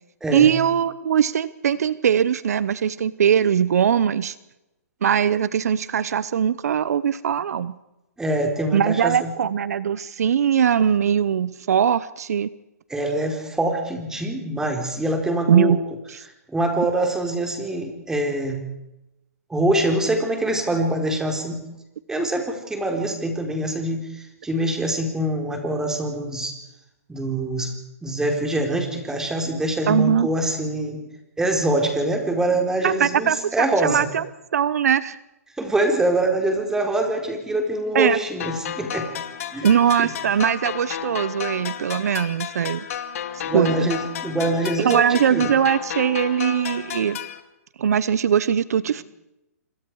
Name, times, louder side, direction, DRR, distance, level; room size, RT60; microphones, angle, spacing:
voice 1, 0.3-4.3 5.0-7.8 8.7-12.5 15.5-15.8 16.1-16.2 29.9-30.3 32.8-34.2 34.5-35.2 37.9-38.2 39.6-42.9 43.3-43.9 44.8-47.2 47.8-49.0, right 8 dB, 70° right, 17 dB, 0.9 m, -21 dB
voice 2, 8.2-9.3 12.9-15.8 16.5-18.6 19.5-21.6 22.1-26.6 27.1-27.7 28.0-31.0 31.4-34.1 35.6-39.1 39.5-39.7 40.0-40.1 43.4-45.5, right 1 dB, 5° right, 3 dB, 4.2 m, -24 dB
sound 1, 38.4-47.4, left 9 dB, 60° left, 2.6 m, -32 dB
27.0 x 26.0 x 4.8 m, 0.90 s
hypercardioid pair, 140°, 9 cm